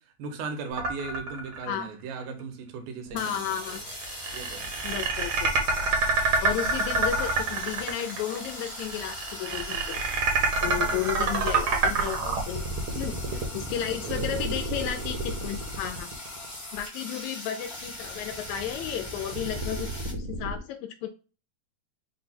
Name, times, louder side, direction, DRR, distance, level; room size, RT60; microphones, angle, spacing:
voice 1, 0.2-3.8 4.3-4.7 10.6-11.2 13.3-13.5 13.9-14.2, right 5 dB, 85° right, 2.4 m, -38 dB
sound 1, 0.8-1.9 2.2-2.3 3.5-16.6 17.8-20.6, right 3 dB, 60° right, 1.4 m, -28 dB
voice 2, 3.1-3.8 4.8-5.5 5.8-5.9 6.4-10.0 10.6-12.7 12.9-13.2 13.5-16.1 16.7-21.1, left 10 dB, 80° left, 1.7 m, -33 dB
sound 2, 3.1-20.1, left 1 dB, 25° left, 0.3 m, -41 dB
5.1 x 2.2 x 4.1 m
omnidirectional pair, 3.6 m